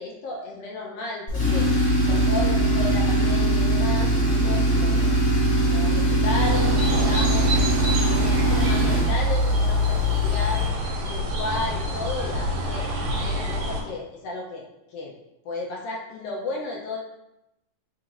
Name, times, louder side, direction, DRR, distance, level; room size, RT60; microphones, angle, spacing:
voice 1, 0.0-1.7 2.1-5.1 5.6-7.7 8.1-10.7 11.0-12.9 13.2-15.1 15.4-17.0, left 2 dB, 80° left, -2 dB, 1.4 m, -33 dB
Tools, 1.3-10.8, equal, 45° left, 1.5 m, -21 dB
sound 1, 6.4-13.8, equal, 90° right, 2.2 m, -28 dB
4.6 x 4.0 x 2.4 m, 0.90 s
omnidirectional pair, 3.4 m